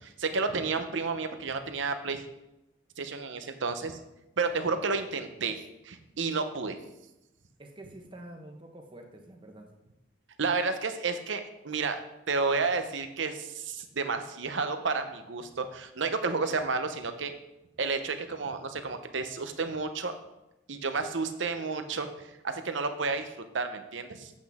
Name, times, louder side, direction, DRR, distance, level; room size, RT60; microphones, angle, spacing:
voice 1, 0.0-2.2 3.0-4.0 4.4-5.6 5.8-6.8 10.4-12.0 12.3-17.3 17.8-20.1 20.7-22.1 22.4-24.3, right 4 dB, 70° right, 8 dB, 0.8 m, -31 dB
voice 2, 7.6-9.7, right 1 dB, 25° right, 3 dB, 1.1 m, -47 dB
8.4 x 7.9 x 3.6 m, 0.93 s
head